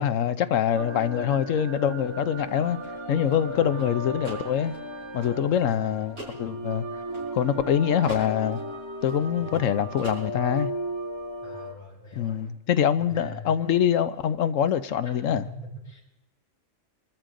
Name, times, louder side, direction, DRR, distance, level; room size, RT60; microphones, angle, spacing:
voice 1, 0.0-2.8 3.1-4.7 5.1-6.8 7.3-8.6 9.0-10.7 12.2-15.5, left 9 dB, 90° left, 1.1 m, -24 dB
sound 1, 0.7-11.7, equal, 20° right, 1.9 m, -36 dB
sound 2, 2.4-7.7 8.0-9.7 10.0-10.7, right 1 dB, 55° right, 6.9 m, -44 dB
voice 2, 3.5-4.0 5.6-5.9 9.4-9.6 11.4-12.4 13.1-13.5 15.2-16.0, equal, 35° left, 7.6 m, -43 dB
27.0 x 13.5 x 3.8 m
omnidirectional pair, 1.3 m